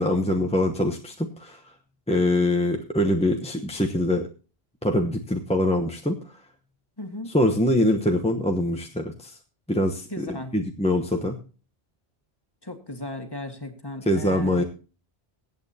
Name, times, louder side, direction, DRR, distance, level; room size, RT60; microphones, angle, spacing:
voice 1, 0.0-1.6 2.1-4.3 4.8-6.2 7.3-9.4 9.7-11.4 14.1-14.6, left 1 dB, 5° left, 2 dB, 0.9 m, -24 dB
voice 2, 7.0-7.3 10.1-10.5 12.6-14.6, left 1 dB, 20° left, 5 dB, 1.8 m, -36 dB
22.5 x 8.7 x 2.8 m, 0.35 s
omnidirectional pair, 1.1 m